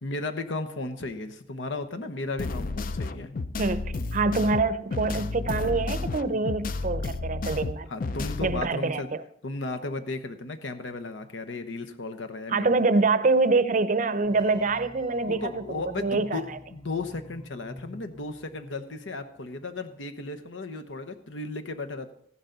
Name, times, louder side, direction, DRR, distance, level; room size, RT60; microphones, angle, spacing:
voice 1, 0.0-3.3 7.9-9.1 9.4-12.7 15.2-22.1, left 2 dB, 90° left, 8 dB, 1.0 m, -35 dB
sound 1, 2.4-8.6, left 3 dB, 50° left, 0.5 m, -32 dB
voice 2, 3.6-7.9 8.4-9.2 12.5-16.6, right 3 dB, 45° right, 14 dB, 0.6 m, -25 dB
sound 2, 14.2-19.3, left 1 dB, 25° left, 0.8 m, -49 dB
14.5 x 11.0 x 3.9 m, 0.67 s
head